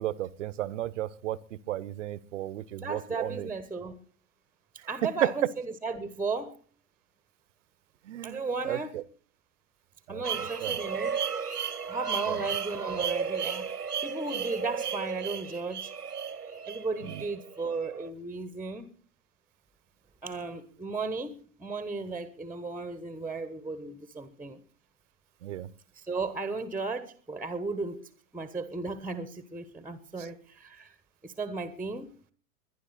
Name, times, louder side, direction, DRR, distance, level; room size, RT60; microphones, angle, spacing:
voice 1, 0.0-3.5 5.0-5.5 8.0-8.4 8.7-9.0 10.1-10.8 12.3-12.4 17.1-17.2 25.4-25.7 30.2-30.3, right 13 dB, 55° right, 1.0 m, -33 dB
voice 2, 2.8-4.0 4.9-6.6 8.2-9.0 10.1-11.2 11.9-13.7 14.0-15.9 16.7-18.9 20.2-24.6 25.9-30.9 31.2-32.1, right 3 dB, 5° right, 1.1 m, -35 dB
sound 1, 10.2-18.1, right 7 dB, 90° right, 1.5 m, -34 dB
22.0 x 11.0 x 4.2 m
figure-of-eight pair, 105°, 45 cm